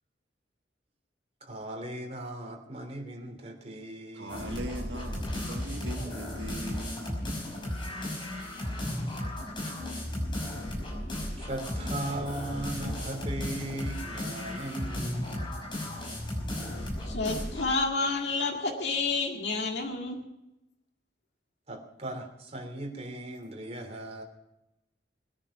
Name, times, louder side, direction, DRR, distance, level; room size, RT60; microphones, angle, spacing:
voice 1, 1.4-4.7 9.6-10.2 11.4-15.7 21.7-24.2, right 1 dB, 35° right, 3 dB, 3.1 m, -38 dB
voice 2, 4.1-7.2, right 1 dB, 80° right, 3 dB, 1.7 m, -40 dB
sound 1, 4.3-17.8, left 1 dB, 30° left, 5.6 m, -35 dB
voice 3, 17.1-20.2, left 3 dB, 80° left, 1 dB, 2.1 m, -29 dB
20.5 x 10.0 x 5.8 m, 0.91 s
head